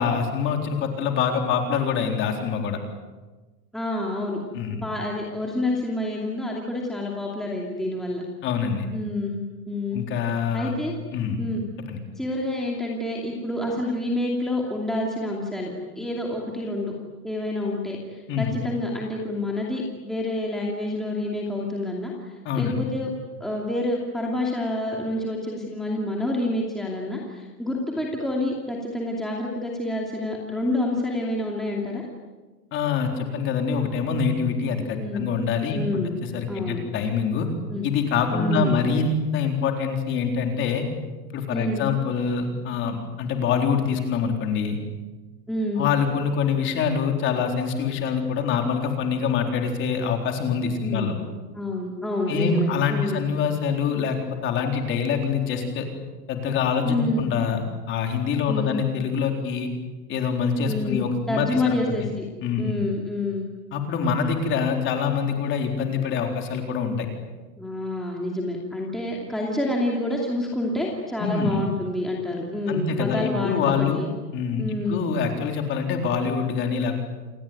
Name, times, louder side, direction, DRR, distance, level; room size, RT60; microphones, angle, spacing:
voice 1, 0.0-2.8 4.5-4.8 8.4-8.9 9.9-10.7 11.1-11.4 11.9-12.0 18.3-18.5 22.4-22.8 32.7-35.8 36.2-37.5 37.8-40.8 41.3-44.8 45.8-51.2 52.3-54.2 54.4-55.9 56.3-57.6 57.9-59.7 60.1-62.1 62.4-62.7 63.7-67.1 71.2-71.7 72.7-74.0 74.3-77.0, left 6 dB, 25° left, 4 dB, 4.0 m, -25 dB
voice 2, 3.7-4.4 4.8-8.2 8.9-10.0 10.5-11.0 11.4-11.7 12.2-16.9 17.2-23.1 23.4-32.1 35.0-35.3 35.7-36.2 36.5-36.8 37.7-37.9 38.3-38.9 41.5-41.8 45.5-45.9 50.8-51.2 51.5-53.3 56.8-57.2 58.5-58.8 60.7-62.2 62.6-63.5 67.6-74.1 74.6-75.0, left 2 dB, ahead, -2 dB, 2.6 m, -28 dB
28.5 x 20.5 x 9.4 m, 1.3 s
supercardioid pair, 165°, 47 cm